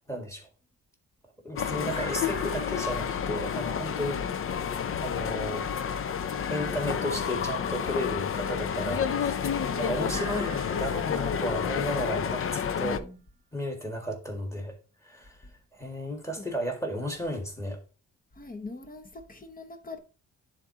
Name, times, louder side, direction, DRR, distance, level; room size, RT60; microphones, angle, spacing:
voice 1, 0.1-0.5 1.4-4.2 5.0-6.0 6.5-9.5 9.7-13.0 13.5-14.8 15.0-15.4 15.7-17.8, equal, 10° left, 1.8 m, -34 dB
sound 1, 1.6-13.0, left 7 dB, 40° left, 0.5 m, -30 dB
sound 2, 1.9-4.3 10.0-12.7, right 4 dB, 20° right, 0.8 m, -47 dB
voice 2, 10.1-10.5 12.8-13.2 16.4-16.5 18.4-20.0, left 3 dB, 25° left, 0.9 m, -42 dB
11.0 x 3.8 x 2.8 m
cardioid pair, 105°, 33 cm